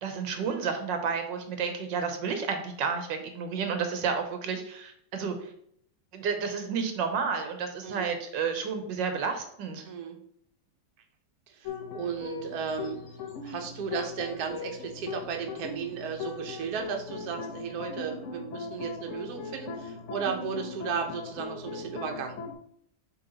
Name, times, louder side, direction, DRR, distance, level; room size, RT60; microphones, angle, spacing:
voice 1, 0.0-5.5 6.1-9.8, right 6 dB, 85° right, 6 dB, 1.5 m, -31 dB
voice 2, 9.8-10.2 11.6-11.7 11.9-13.0 13.4-22.4, right 6 dB, 65° right, 3 dB, 1.3 m, -34 dB
sound 1, 11.7-22.5, left 5 dB, 55° left, 0.9 m, -39 dB
6.9 x 3.5 x 3.9 m, 0.66 s
omnidirectional pair, 1.9 m